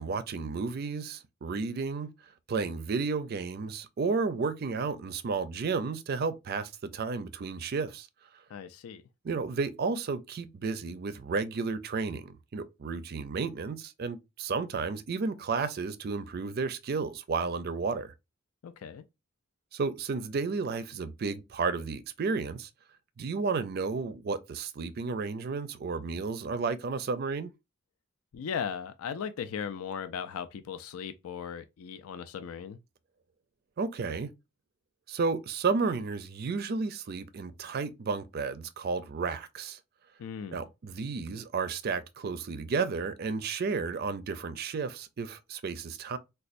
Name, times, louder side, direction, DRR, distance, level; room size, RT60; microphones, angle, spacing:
voice 1, 0.0-2.1 2.5-8.1 9.2-18.1 19.7-22.7 23.2-27.5 33.8-34.3 35.1-39.8 40.5-46.2, right 4 dB, 50° right, 0.4 m, -32 dB
voice 2, 8.5-9.0 18.6-19.0 28.3-32.8 40.2-40.6, left 7 dB, 85° left, 0.4 m, -37 dB
4.1 x 2.2 x 2.5 m
head